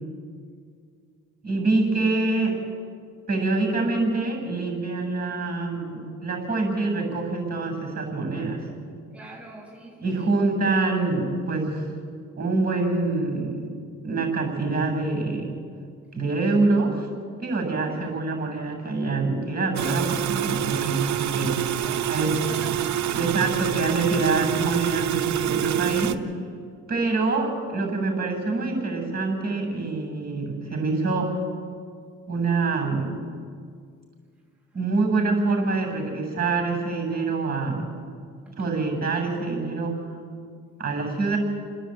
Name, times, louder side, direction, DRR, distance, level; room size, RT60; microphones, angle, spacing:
voice 1, 1.4-2.6 3.3-8.6 10.0-11.9 12.4-13.7 14.0-15.5 16.1-17.1 17.4-21.5 22.1-22.4 23.1-26.2 26.9-31.4 32.3-33.1 34.7-37.9 38.6-40.0 40.8-41.4, right 3 dB, 30° right, 4 dB, 7.6 m, -25 dB
voice 2, 9.1-10.3 17.9-18.1 21.8-23.1, right 1 dB, 5° right, -5 dB, 6.5 m, -44 dB
sound 1, 19.8-26.2, right 10 dB, 65° right, 1.0 m, -26 dB
30.0 x 10.0 x 9.1 m, 2.2 s
cardioid pair, 90°, 30 cm